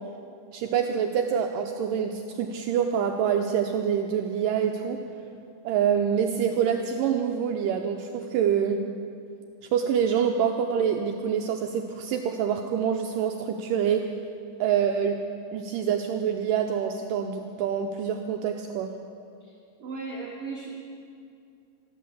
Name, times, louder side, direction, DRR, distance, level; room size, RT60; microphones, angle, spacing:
voice 1, 0.5-5.0 5.6-8.8 9.7-14.1 14.6-15.2 15.5-18.9, right 8 dB, 85° right, 4 dB, 1.9 m, -26 dB
voice 2, 19.8-20.7, right 4 dB, 70° right, -2 dB, 1.4 m, -36 dB
14.0 x 12.0 x 7.0 m, 2.5 s
omnidirectional pair, 4.6 m